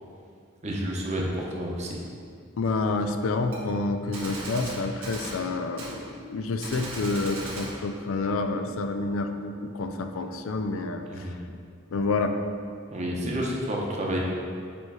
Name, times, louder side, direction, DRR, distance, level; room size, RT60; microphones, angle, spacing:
voice 1, 0.6-2.0 11.1-11.4 12.9-14.2, equal, 35° right, -2 dB, 0.8 m, -30 dB
voice 2, 2.6-11.3 11.9-12.4, left 3 dB, 75° left, 6 dB, 0.4 m, -28 dB
Gunshot gunfire, 3.5-3.6 4.1-5.4 5.8-6.0 6.6-7.7, right 2 dB, 85° right, 1.4 m, -37 dB
6.9 x 3.1 x 4.7 m, 2.2 s
head